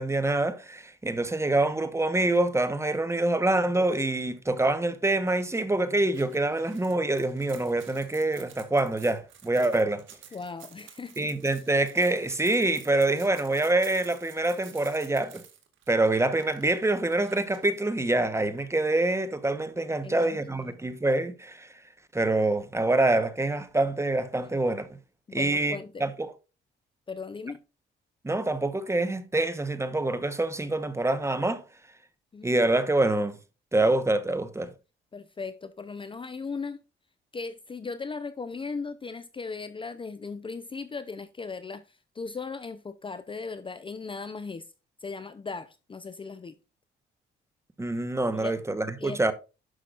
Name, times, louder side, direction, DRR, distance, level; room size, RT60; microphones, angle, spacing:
voice 1, 0.0-10.0 11.2-15.4 15.9-21.7 22.1-24.9 25.3-26.3 28.2-31.6 32.4-33.4 33.7-34.7 47.8-49.3, right 2 dB, 15° right, 1.0 m, -26 dB
sound 1, 6.1-17.8, right 9 dB, 75° right, 1.9 m, -51 dB
voice 2, 10.3-11.3 20.0-20.8 25.3-26.0 27.1-27.6 32.3-32.6 35.1-36.8 37.3-44.7 45.0-46.6 48.3-48.6 49.0-49.3, left 4 dB, 25° left, 0.6 m, -38 dB
11.0 x 5.9 x 2.5 m
cardioid pair, 90°, 20 cm